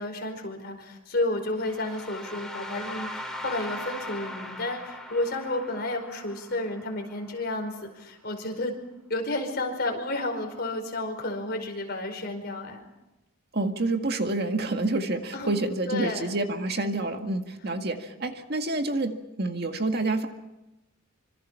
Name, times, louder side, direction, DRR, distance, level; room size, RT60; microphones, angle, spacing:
voice 1, 0.0-8.7 9.1-12.8 15.3-15.5 15.9-16.2, left 2 dB, 50° left, 3 dB, 5.0 m, -31 dB
sound 1, 1.5-7.5, left 1 dB, ahead, 3.3 m, -40 dB
voice 2, 13.5-20.3, right 2 dB, 50° right, 5 dB, 1.9 m, -28 dB
26.0 x 25.5 x 5.7 m, 0.97 s
head